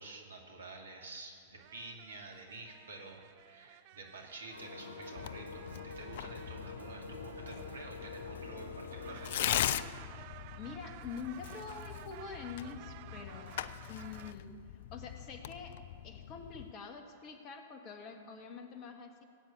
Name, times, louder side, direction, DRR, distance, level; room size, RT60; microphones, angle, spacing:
voice 1, 0.0-9.7, right 2 dB, 75° right, 2 dB, 2.4 m, -49 dB
sound 1, 1.6-8.5 8.9-14.3, right 17 dB, 45° right, 0.4 m, -55 dB
sound 2, 4.5-9.8, left 3 dB, 80° left, 3.2 m, -47 dB
Tearing, 5.2-16.7, left 11 dB, 55° left, 0.5 m, -41 dB
voice 2, 10.6-14.5 14.9-15.8 16.0-19.2, left 5 dB, 35° left, 5 dB, 1.9 m, -46 dB
17.5 x 9.0 x 8.5 m, 2.4 s
figure-of-eight pair, 100°, 0 cm